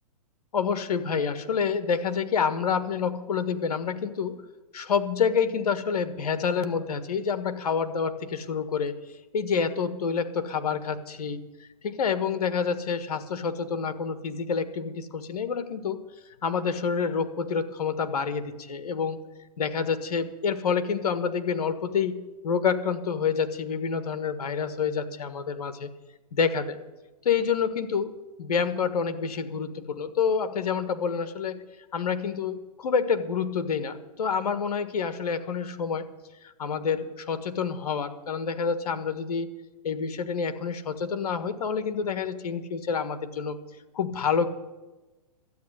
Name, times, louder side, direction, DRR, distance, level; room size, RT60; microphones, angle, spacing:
voice 1, 0.5-4.4 4.7-9.0 9.3-16.0 16.4-19.2 19.6-25.9 26.3-26.8 27.2-28.1 28.4-31.6 31.9-36.1 36.6-39.5 39.8-43.6 43.9-44.5, left 6 dB, 70° left, 11 dB, 1.6 m, -28 dB
13.0 x 8.7 x 9.5 m, 1.1 s
hypercardioid pair, 145°, 20 cm